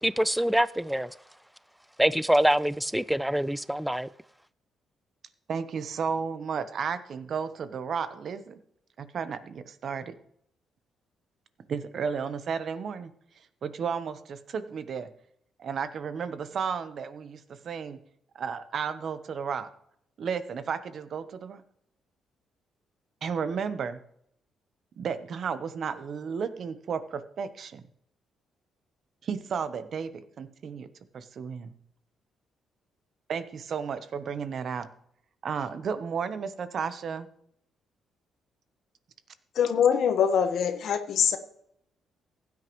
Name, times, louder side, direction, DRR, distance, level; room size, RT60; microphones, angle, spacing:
voice 1, 0.0-1.1 2.0-4.1, equal, 5° right, 0.3 m, -25 dB
voice 2, 5.5-8.6 9.0-10.2 11.7-13.1 13.6-15.1 15.6-18.0 18.3-19.7 20.2-21.6 23.2-24.0 25.0-27.8 29.2-30.9 31.1-31.7 33.3-34.9 35.4-37.3, right 6 dB, 55° right, 1.0 m, -33 dB
voice 3, 39.5-41.4, left 7 dB, 70° left, 1.3 m, -23 dB
15.5 x 9.5 x 3.1 m
cardioid pair, 90°, 0 cm